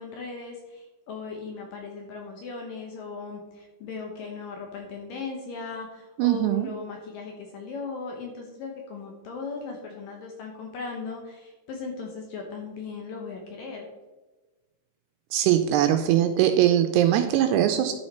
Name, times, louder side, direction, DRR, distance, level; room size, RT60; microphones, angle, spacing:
voice 1, 0.0-13.9, left 4 dB, 70° left, 1 dB, 2.3 m, -38 dB
voice 2, 6.2-6.7 15.3-17.9, right 11 dB, 85° right, 8 dB, 2.4 m, -21 dB
11.5 x 6.5 x 4.3 m, 1.2 s
omnidirectional pair, 5.1 m